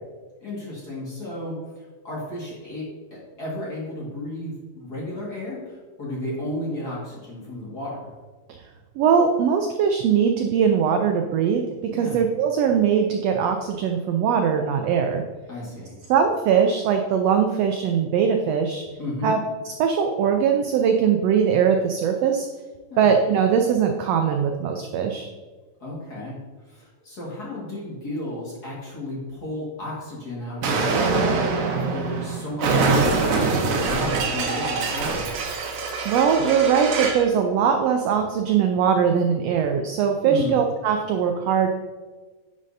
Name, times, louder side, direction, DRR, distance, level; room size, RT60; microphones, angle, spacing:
voice 1, 0.4-8.0 11.9-12.2 15.5-15.9 19.0-19.4 22.9-23.1 25.8-26.4 26.6-35.3 40.2-40.5, left 1 dB, 35° left, -5 dB, 2.0 m, -33 dB
voice 2, 9.0-15.2 16.1-18.8 19.2-19.4 19.6-22.5 23.0-25.3 36.0-41.7, right 7 dB, 80° right, 4 dB, 1.5 m, -21 dB
Explosion, 30.6-37.3, right 4 dB, 65° right, 1.6 m, -24 dB
9.6 x 6.5 x 2.7 m, 1.4 s
omnidirectional pair, 3.4 m